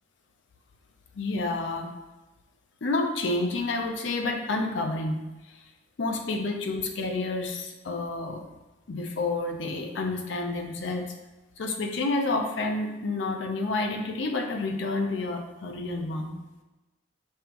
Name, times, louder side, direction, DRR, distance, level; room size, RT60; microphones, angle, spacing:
voice 1, 1.2-1.9 2.8-5.2 6.0-8.4 8.9-11.1 11.6-16.3, left 2 dB, 75° left, 3 dB, 0.5 m, -29 dB
5.5 x 2.5 x 2.9 m, 1.1 s
head